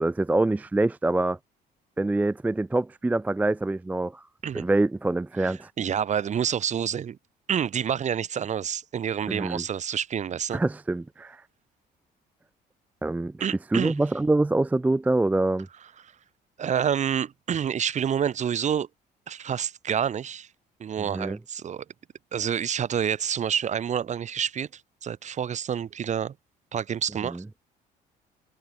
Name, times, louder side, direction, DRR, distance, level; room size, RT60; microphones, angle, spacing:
voice 1, 0.0-1.4 2.0-4.2 4.5-5.7 9.3-9.6 10.5-11.4 13.0-13.3 13.7-15.7 21.0-21.4 27.2-27.4, right 2 dB, 10° right, 0.5 m, -25 dB
voice 2, 5.4-7.2 7.5-10.6 13.4-13.9 16.6-18.9 19.3-20.5 20.8-21.8 22.3-26.3 26.7-27.4, right 8 dB, 45° right, 2.1 m, -28 dB
cardioid pair, 110°, 17 cm